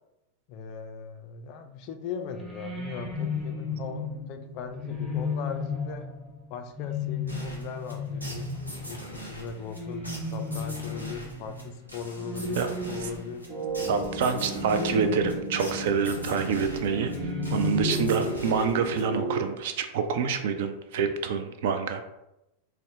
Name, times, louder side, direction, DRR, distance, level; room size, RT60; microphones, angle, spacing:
voice 1, 0.5-6.1 6.5-8.5 8.8-12.6 12.9-13.5, left 6 dB, 45° left, 7 dB, 0.3 m, -39 dB
sound 1, 2.2-13.8 14.6-15.9 16.9-18.5, left 4 dB, 5° right, 0.8 m, -34 dB
sound 2, 7.3-19.4, equal, 85° right, 0.8 m, -43 dB
sound 3, 13.5-19.4, right 2 dB, 35° right, 1.0 m, -33 dB
voice 2, 13.9-17.1 17.5-22.0, right 6 dB, 55° right, 8 dB, 0.3 m, -27 dB
4.0 x 2.0 x 2.7 m, 0.89 s
figure-of-eight pair, 90°, 0 cm